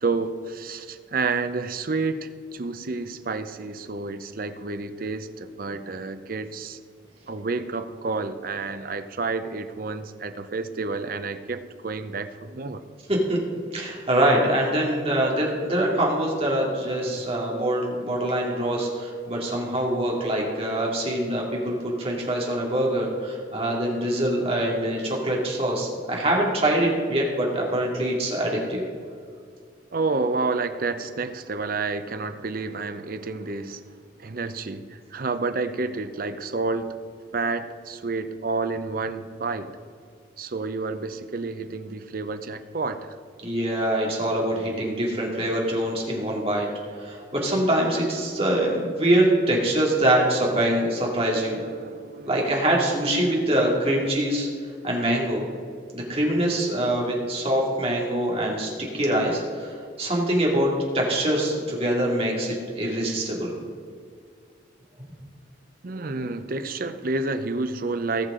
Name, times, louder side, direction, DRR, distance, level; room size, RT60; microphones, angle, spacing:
voice 1, 0.0-6.8 7.3-12.8 17.0-17.3 21.9-22.2 29.9-37.0 37.3-39.7 40.4-43.2 51.2-52.8 53.8-54.4 56.7-57.0 65.8-68.3, right 3 dB, 50° right, 10 dB, 0.6 m, -30 dB
voice 2, 13.7-28.8 43.4-46.7 47.0-51.6 52.3-54.5 54.8-55.5 55.9-58.7 58.9-63.6, right 1 dB, 30° right, -2 dB, 2.3 m, -24 dB
18.5 x 6.5 x 3.8 m, 2.2 s
head